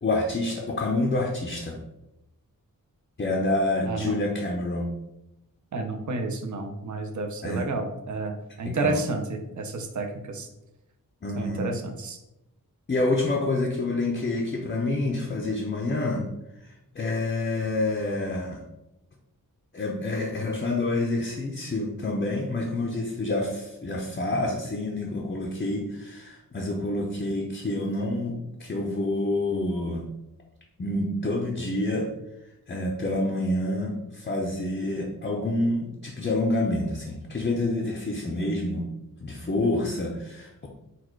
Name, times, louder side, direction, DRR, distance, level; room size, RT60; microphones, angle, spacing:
voice 1, 0.0-1.8 3.2-4.9 7.4-7.7 8.6-9.0 11.2-11.7 12.9-16.3 16.6-18.6 19.7-30.1 30.8-32.1 32.7-38.9 39.2-40.7, left 2 dB, 30° left, 0 dB, 0.6 m, -28 dB
voice 2, 5.7-10.5 11.4-12.2, right 2 dB, 55° right, 4 dB, 0.7 m, -30 dB
4.1 x 2.3 x 4.5 m, 0.90 s
wide cardioid pair, 100°, 36 cm